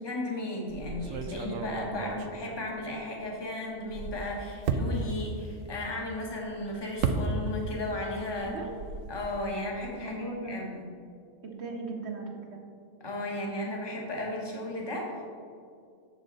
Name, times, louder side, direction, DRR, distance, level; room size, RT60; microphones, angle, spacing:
voice 1, 0.0-8.5 9.1-10.9 13.0-15.2, left 1 dB, 20° left, -2 dB, 1.3 m, -35 dB
sound 1, 0.7-3.4 3.7-7.8 8.1-9.4, right 4 dB, 85° right, 1.1 m, -34 dB
voice 2, 8.4-8.7 10.0-10.6 11.4-12.6, right 2 dB, 55° right, 1 dB, 1.4 m, -38 dB
9.3 x 6.5 x 4.0 m, 2.3 s
omnidirectional pair, 1.3 m